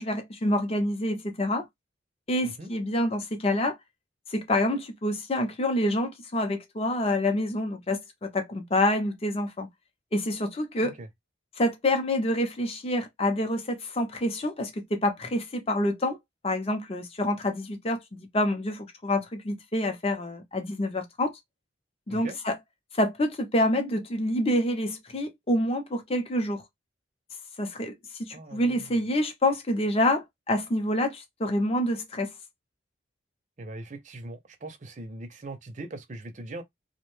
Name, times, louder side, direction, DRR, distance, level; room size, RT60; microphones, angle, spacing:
voice 1, 0.0-1.7 2.3-3.8 4.3-9.7 10.1-11.0 11.6-16.2 16.4-21.3 22.1-22.6 22.9-26.6 27.6-27.9 28.2-32.3, left 1 dB, 30° left, 0.6 m, -27 dB
voice 2, 28.3-28.9 33.6-36.6, right 2 dB, 40° right, 0.6 m, -41 dB
2.6 x 2.1 x 3.1 m
head